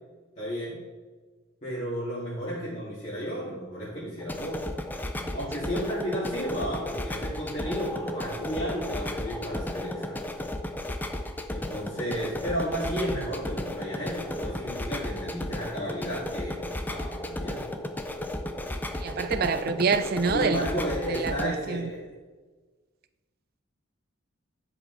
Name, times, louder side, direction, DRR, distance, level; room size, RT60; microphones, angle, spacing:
voice 1, 0.4-0.8 1.6-4.6 5.3-10.3 11.5-17.7 20.3-22.0, equal, 35° left, 2.5 m, -33 dB
sound 1, 4.2-21.4, left 1 dB, 10° left, 0.4 m, -34 dB
voice 2, 19.0-20.7 21.1-21.9, right 5 dB, 50° right, 0.4 m, -27 dB
10.0 x 5.0 x 4.1 m
head